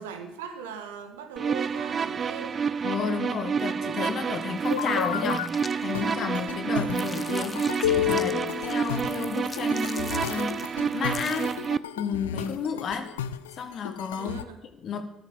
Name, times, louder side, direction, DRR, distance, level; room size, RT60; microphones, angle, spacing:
voice 1, 0.0-2.6 6.8-7.1 14.2-14.6, right 6 dB, 85° right, 6 dB, 1.5 m, -39 dB
sound 1, 1.4-11.8, right 6 dB, 40° right, 0.5 m, -29 dB
voice 2, 2.8-11.6 12.0-13.2 13.6-14.4 14.8-15.0, left 6 dB, 55° left, 7 dB, 1.6 m, -32 dB
sound 2, 4.6-6.5 6.8-11.8, left 4 dB, 30° left, 0.7 m, -43 dB
sound 3, 4.7-5.5 5.9-14.4, left 11 dB, 85° left, 0.5 m, -32 dB
12.0 x 8.9 x 6.9 m, 0.96 s
hypercardioid pair, 55°, 0 cm